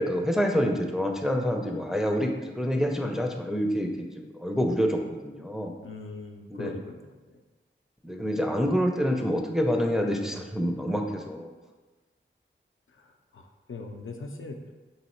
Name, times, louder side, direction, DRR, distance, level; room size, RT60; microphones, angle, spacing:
voice 1, 0.0-5.8 6.5-6.7 8.0-11.5, equal, ahead, 2 dB, 0.4 m, -27 dB
voice 2, 5.8-7.4 12.9-14.6, left 3 dB, 80° left, 3 dB, 0.4 m, -41 dB
3.1 x 2.7 x 4.3 m, 1.2 s
wide cardioid pair, 50°, 20 cm